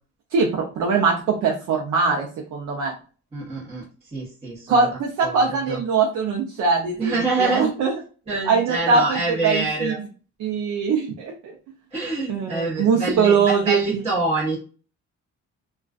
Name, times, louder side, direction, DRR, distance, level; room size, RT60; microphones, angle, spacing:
voice 1, 0.3-2.9 4.7-7.9 8.5-9.9 10.4-11.5 12.3-14.0, right 5 dB, 75° right, 0 dB, 0.6 m, -22 dB
voice 2, 3.3-4.9 5.2-5.8 7.0-7.7 8.3-10.0 11.9-14.6, right 3 dB, 20° right, -8 dB, 1.0 m, -26 dB
2.3 x 2.3 x 2.3 m, 0.38 s
cardioid pair, 90°, 30 cm